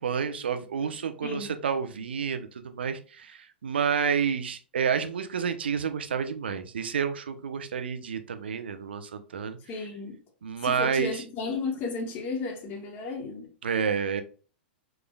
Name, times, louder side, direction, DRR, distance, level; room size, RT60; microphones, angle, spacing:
voice 1, 0.0-9.9 10.4-11.2 13.6-14.2, right 7 dB, 70° right, 0.7 m, -29 dB
voice 2, 9.7-10.2 10.6-13.5, left 4 dB, 35° left, 1.4 m, -33 dB
5.0 x 3.7 x 2.2 m
figure-of-eight pair, 100°, 6 cm